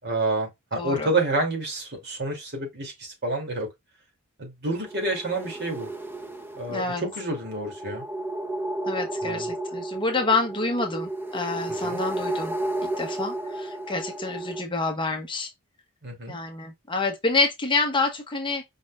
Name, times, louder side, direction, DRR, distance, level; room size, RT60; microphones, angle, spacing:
voice 1, 0.0-3.7 4.4-5.9 6.6-8.0 9.2-9.5 11.8-12.0 16.0-16.4, right 2 dB, 50° right, 2.6 m, -29 dB
voice 2, 0.7-1.1 6.7-7.0 8.9-12.6 13.0-15.5 16.3-18.6, left 3 dB, 20° left, 0.9 m, -27 dB
sound 1, 4.7-14.6, right 1 dB, 10° right, 0.6 m, -33 dB
5.1 x 4.1 x 2.3 m
head